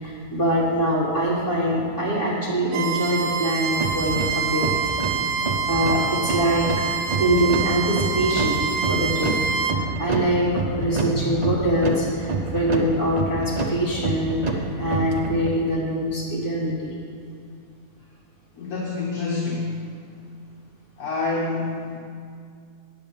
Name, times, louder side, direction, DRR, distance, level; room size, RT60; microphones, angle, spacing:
voice 1, 0.0-4.7 5.7-8.6 8.9-16.9, equal, 50° left, -7 dB, 3.3 m, -24 dB
Bowed string instrument, 2.7-9.8, right 6 dB, 65° right, 1.1 m, -26 dB
sound 1, 3.8-15.6, right 3 dB, 35° right, 0.7 m, -28 dB
voice 2, 18.5-19.9 21.0-22.0, left 3 dB, 70° left, -4 dB, 1.7 m, -27 dB
9.1 x 7.9 x 7.2 m, 2.3 s
omnidirectional pair, 1.6 m